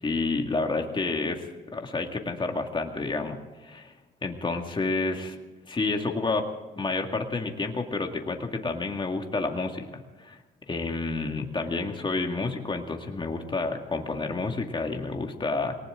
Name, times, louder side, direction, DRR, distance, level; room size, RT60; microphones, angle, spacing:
voice 1, 0.0-3.9 4.2-5.4 5.7-6.5 6.8-10.4 10.7-15.8, left 3 dB, 25° left, 3 dB, 2.1 m, -30 dB
19.5 x 19.0 x 3.8 m, 1.2 s
cardioid pair, 90°, 20 cm